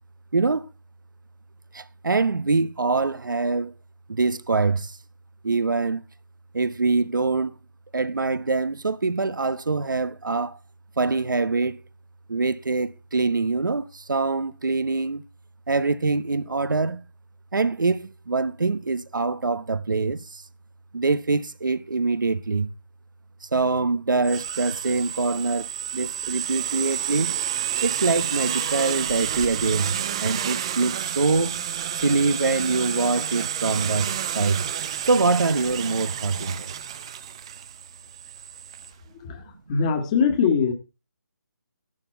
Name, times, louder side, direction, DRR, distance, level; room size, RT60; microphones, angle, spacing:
voice 1, 0.3-0.7 1.7-3.7 4.1-5.0 5.4-6.0 6.5-7.6 7.9-10.6 11.0-11.8 12.3-15.2 15.7-17.0 17.5-20.4 20.9-22.7 23.4-27.4 27.8-31.6 32.0-34.6 35.0-36.7, right 3 dB, 90° right, 1.1 m, -24 dB
sound 1, 24.2-38.9, right 9 dB, 15° right, 0.5 m, -30 dB
voice 2, 39.2-40.7, left 6 dB, 20° left, 1.5 m, -22 dB
12.5 x 11.5 x 4.4 m
hypercardioid pair, 170°, 10 cm